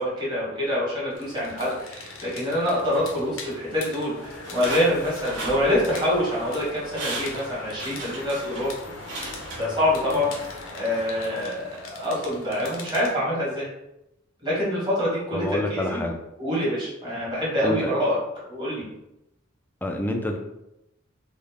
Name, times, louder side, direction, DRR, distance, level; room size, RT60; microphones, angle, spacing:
voice 1, 0.0-8.9 9.6-13.7 14.4-16.0 16.4-18.2 18.5-18.9, left 1 dB, 20° right, -7 dB, 1.3 m, -26 dB
sound 1, 1.1-13.1, left 3 dB, 90° left, 0.7 m, -40 dB
sound 2, 4.1-6.2 6.6-6.7 6.9-10.1 10.5-10.6, right 2 dB, 65° right, 1.1 m, -36 dB
voice 2, 15.3-16.2 17.6-17.9 19.8-20.4, left 1 dB, 10° left, 3 dB, 0.3 m, -27 dB
3.5 x 2.1 x 3.5 m, 0.88 s
head